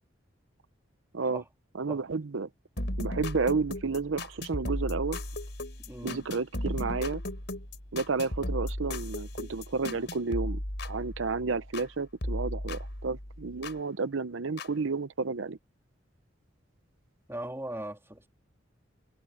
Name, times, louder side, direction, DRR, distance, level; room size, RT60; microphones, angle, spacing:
voice 1, 1.7-2.5 3.0-5.2 6.0-7.2 7.9-15.6, right 4 dB, 90° right, 0.7 m, -31 dB
sound 1, 2.8-11.9 12.2-13.8 14.6-14.7, left 1 dB, 65° left, 5.9 m, -36 dB
voice 2, 5.9-6.2 17.3-18.3, right 1 dB, 15° right, 3.5 m, -38 dB
head